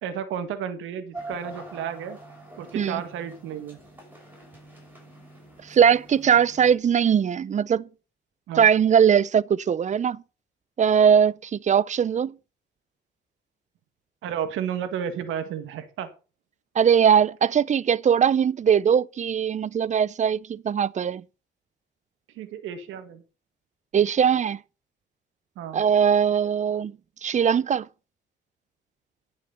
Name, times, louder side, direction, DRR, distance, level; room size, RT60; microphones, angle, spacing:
voice 1, 0.0-2.2 2.6-3.8 8.5-8.7 14.2-16.1 22.3-23.2 25.5-25.8, right 8 dB, 90° right, 1.8 m, -32 dB
sound 1, 1.1-6.8, right 2 dB, 10° right, 6.0 m, -44 dB
voice 2, 5.7-7.9 8.6-10.2 10.8-12.3 16.8-21.2 23.9-24.6 25.7-26.9 27.2-27.9, right 8 dB, 40° right, 0.5 m, -20 dB
11.0 x 6.4 x 5.5 m
cardioid pair, 90°, 20 cm